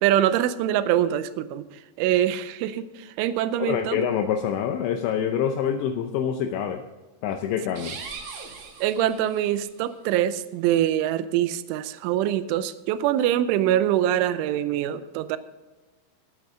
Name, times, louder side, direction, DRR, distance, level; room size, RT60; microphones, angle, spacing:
voice 1, 0.0-1.7 2.0-4.0 8.8-15.4, right 11 dB, 90° right, 13 dB, 3.1 m, -24 dB
voice 2, 3.6-6.8 7.2-8.0, left 8 dB, 80° left, 5 dB, 2.9 m, -26 dB
sound 1, 7.7-9.7, right 5 dB, 65° right, 1.4 m, -40 dB
19.0 x 8.8 x 3.7 m, 1.2 s
omnidirectional pair, 5.4 m